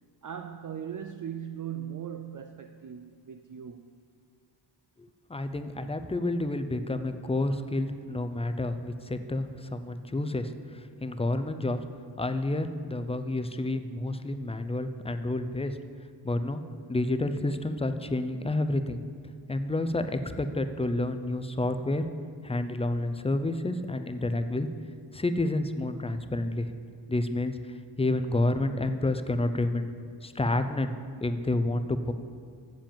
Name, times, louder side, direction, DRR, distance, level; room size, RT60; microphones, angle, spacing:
voice 1, 0.2-3.9, right 9 dB, 50° right, 6 dB, 0.4 m, -39 dB
voice 2, 5.0-11.8 12.2-15.8 16.2-16.6 16.9-19.0 19.5-22.0 22.4-24.7 25.1-26.7 27.1-27.6 28.0-29.9 30.2-30.9 31.2-32.1, left 2 dB, 15° left, 9 dB, 0.4 m, -29 dB
7.5 x 7.1 x 7.4 m, 2.1 s
wide cardioid pair, 110°, 43 cm